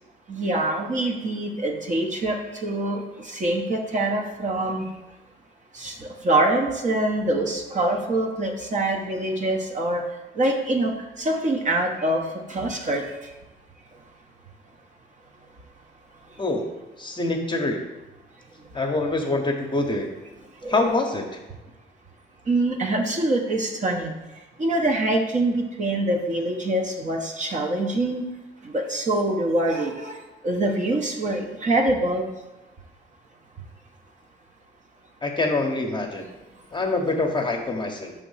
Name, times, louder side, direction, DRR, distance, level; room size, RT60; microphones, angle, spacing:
voice 1, 0.3-3.0 3.3-4.8 5.7-10.0 10.4-10.9 11.2-12.2 12.5-13.0 20.6-20.8 22.5-24.1 24.6-28.2 28.7-30.2 30.4-32.3, right 1 dB, 40° right, 2 dB, 0.9 m, -24 dB
voice 2, 17.0-17.8 18.7-20.1 20.7-21.2 35.2-36.2 36.7-38.1, left 2 dB, 25° left, 2 dB, 0.8 m, -25 dB
5.9 x 3.5 x 5.5 m, 1.1 s
cardioid pair, 90°, 20 cm